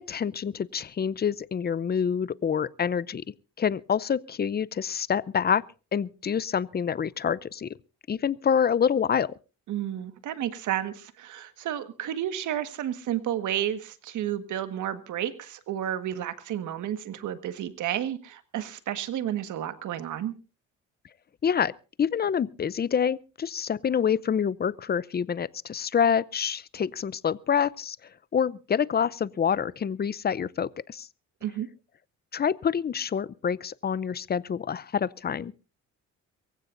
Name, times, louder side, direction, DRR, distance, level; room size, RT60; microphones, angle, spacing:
voice 1, 0.0-3.2 3.6-5.6 5.9-7.8 8.1-9.3 21.4-21.7 22.0-28.0 28.3-31.1 32.3-35.5, left 7 dB, 30° left, 0.6 m, -27 dB
voice 2, 9.7-20.3 31.4-31.7, right 11 dB, 75° right, 1.6 m, -31 dB
23.5 x 15.5 x 2.6 m
cardioid pair, 90°, 30 cm